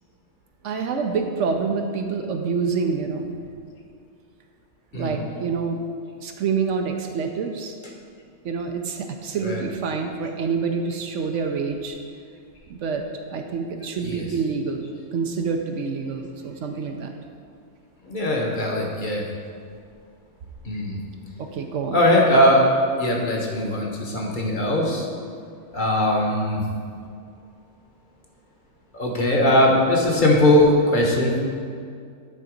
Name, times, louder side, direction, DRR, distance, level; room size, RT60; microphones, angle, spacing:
voice 1, 0.6-3.3 4.9-5.8 6.2-7.8 8.4-12.0 12.7-14.8 15.1-17.1 21.4-22.0, right 5 dB, 75° right, 4 dB, 0.9 m, -27 dB
voice 2, 4.9-5.3 9.4-9.7 14.0-14.3 18.1-19.2 20.6-21.0 21.9-22.6 23.0-25.0 25.7-26.6 28.9-31.4, left 1 dB, 40° left, -1 dB, 1.2 m, -20 dB
9.8 x 3.9 x 5.1 m, 2.3 s
omnidirectional pair, 1.3 m